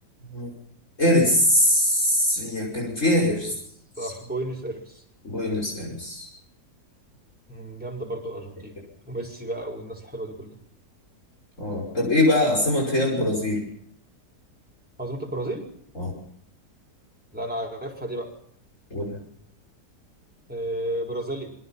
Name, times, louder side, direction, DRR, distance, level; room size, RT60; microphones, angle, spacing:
voice 1, 0.2-0.5 1.0-3.5 4.0-4.1 5.2-6.3 11.6-13.6 15.9-16.1 18.9-19.2, left 1 dB, 45° left, -1 dB, 6.2 m, -22 dB
voice 2, 3.1-3.5 4.0-5.0 7.5-8.8 9.1-10.6 15.0-15.7 17.3-18.3 20.5-21.5, right 1 dB, 5° right, -2 dB, 5.5 m, -32 dB
27.0 x 22.5 x 5.8 m, 0.67 s
omnidirectional pair, 1.8 m